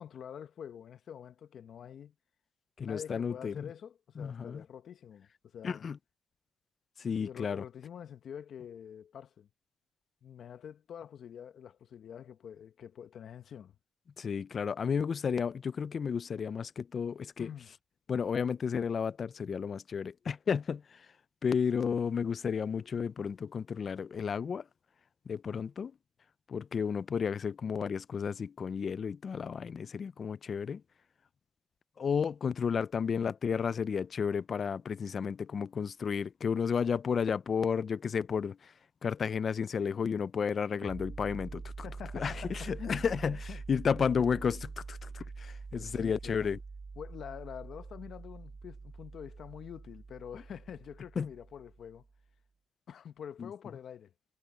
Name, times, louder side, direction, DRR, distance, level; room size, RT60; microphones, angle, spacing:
voice 1, 0.0-2.1 2.8-5.9 7.0-9.5 10.2-13.8 17.4-17.7 41.8-43.1 43.5-43.6 44.2-44.3 45.8-46.5 47.0-52.0 52.9-54.1, left 8 dB, 60° left, 1.3 m, -46 dB
voice 2, 2.8-3.7 4.2-4.6 5.6-6.0 7.0-7.6 14.2-17.5 18.1-21.1 21.4-24.6 25.3-25.9 26.5-30.8 32.0-38.7 39.0-41.6 42.1-43.4 43.7-46.6 51.2-51.3 53.4-53.5, left 6 dB, 45° left, 0.5 m, -32 dB
sound 1, 40.8-52.2, right 4 dB, 30° right, 2.2 m, -45 dB
cardioid pair, 90°, 0 cm